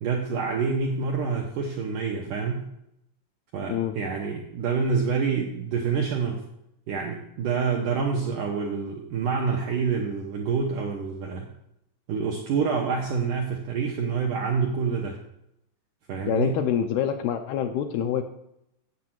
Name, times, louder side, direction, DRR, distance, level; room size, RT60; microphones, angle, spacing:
voice 1, 0.0-2.6 3.5-6.4 6.9-11.5 12.1-15.2 16.1-16.5, right 5 dB, 75° right, 0 dB, 1.9 m, -27 dB
voice 2, 16.3-18.2, left 9 dB, 80° left, 6 dB, 2.4 m, -26 dB
8.3 x 7.4 x 7.5 m, 0.79 s
omnidirectional pair, 5.1 m